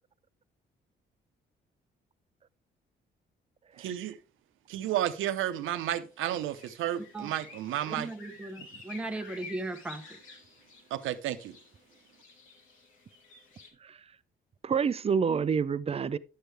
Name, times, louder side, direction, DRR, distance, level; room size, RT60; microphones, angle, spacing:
voice 1, 3.8-4.2 4.7-8.1 10.9-11.6, right 12 dB, 85° right, 0.8 m, -32 dB
sound 1, 6.1-13.7, left 3 dB, 90° left, 2.1 m, -51 dB
voice 2, 7.9-10.1, right 2 dB, 5° right, 0.8 m, -37 dB
voice 3, 14.6-16.2, right 6 dB, 30° right, 0.4 m, -28 dB
10.5 x 6.4 x 3.3 m
cardioid pair, 90°, 20 cm